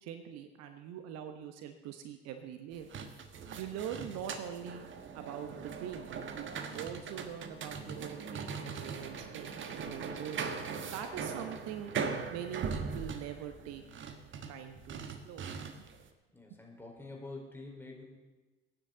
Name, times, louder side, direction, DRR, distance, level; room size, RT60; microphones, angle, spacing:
voice 1, 0.0-2.9 3.5-4.8 5.1-10.5 10.9-11.9 12.3-13.8 14.5-15.5, right 9 dB, 60° right, 7 dB, 1.1 m, -43 dB
sound 1, 2.7-16.0, right 5 dB, 40° right, 1.4 m, -40 dB
voice 2, 16.3-18.0, left 2 dB, 10° left, -1 dB, 4.3 m, -47 dB
22.5 x 9.8 x 3.9 m, 1.2 s
figure-of-eight pair, 60°, 29 cm